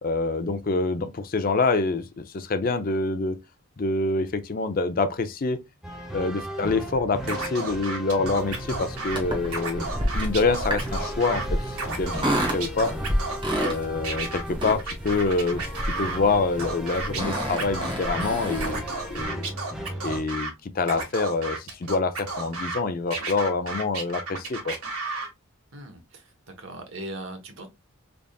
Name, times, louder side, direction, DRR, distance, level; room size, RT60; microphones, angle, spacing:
voice 1, 0.0-3.4 3.8-5.6 6.1-12.2 12.5-12.9 13.6-19.5 20.0-24.8, left 3 dB, 40° left, 0.4 m, -26 dB
sound 1, 5.8-20.2, equal, ahead, 0.6 m, -37 dB
Scratching (performance technique), 7.3-9.2 9.5-11.5 11.7-13.7 14.0-16.2 16.6-18.3 18.6-20.5 20.8-22.8 23.1-25.3, right 3 dB, 90° right, 1.5 m, -33 dB
sound 2, 8.4-19.2, equal, 20° right, 1.1 m, -31 dB
voice 2, 25.7-26.3 26.6-27.7, right 1 dB, 55° right, 1.0 m, -39 dB
3.8 x 3.5 x 2.3 m
head